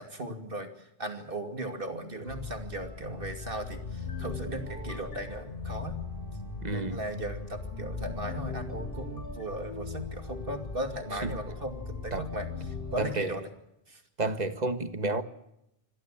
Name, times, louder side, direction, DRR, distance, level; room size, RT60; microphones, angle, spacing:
voice 1, 0.0-6.0 6.6-13.4 13.9-14.0, right 1 dB, 55° right, 2.8 m, -37 dB
sound 1, 2.2-13.0, left 4 dB, 60° left, 5.0 m, -39 dB
voice 2, 6.6-7.0 11.2-11.3 12.1-12.2 13.0-13.3 14.2-15.2, right 2 dB, 40° right, 1.7 m, -30 dB
26.0 x 17.0 x 7.7 m
omnidirectional pair, 1.1 m